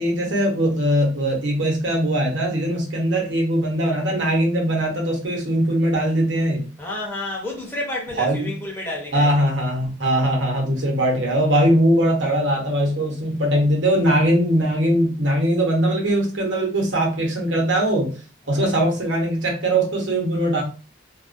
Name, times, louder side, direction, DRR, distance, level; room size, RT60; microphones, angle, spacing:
voice 1, 0.0-6.7 8.2-8.5 9.1-18.1 18.5-20.6, right 1 dB, 75° right, 0.8 m, -21 dB
voice 2, 6.8-9.5 18.4-18.9, left 1 dB, 10° left, 0.5 m, -31 dB
2.3 x 2.1 x 2.5 m
head